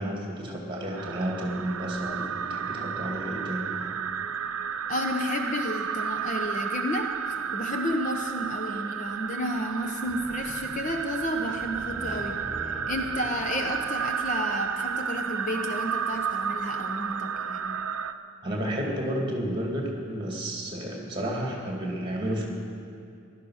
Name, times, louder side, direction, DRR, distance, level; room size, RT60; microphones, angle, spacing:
voice 1, 0.0-3.9 18.4-22.5, right 1 dB, 20° right, 0 dB, 2.3 m, -31 dB
sound 1, 1.0-18.1, right 7 dB, 75° right, 0.6 m, -32 dB
voice 2, 4.9-17.8, left 1 dB, 35° left, 4 dB, 0.8 m, -32 dB
sound 2, 10.1-15.0, equal, 10° left, 3.3 m, -44 dB
15.5 x 12.0 x 6.4 m, 2.5 s
head